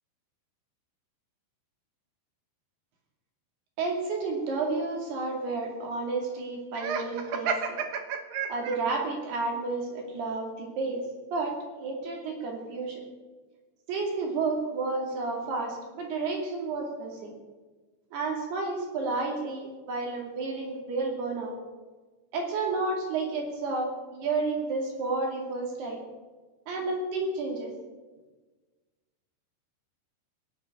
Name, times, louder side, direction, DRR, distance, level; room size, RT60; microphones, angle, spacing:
voice 1, 3.8-7.8 8.5-11.0 11.3-11.5 11.8-13.0 13.9-17.3 18.1-21.6 22.3-26.0 26.7-27.7, right 3 dB, 55° right, 1 dB, 4.2 m, -31 dB
Laughter, 6.7-9.0, right 6 dB, 75° right, 2.1 m, -31 dB
17.0 x 7.7 x 8.7 m, 1.3 s
omnidirectional pair, 5.9 m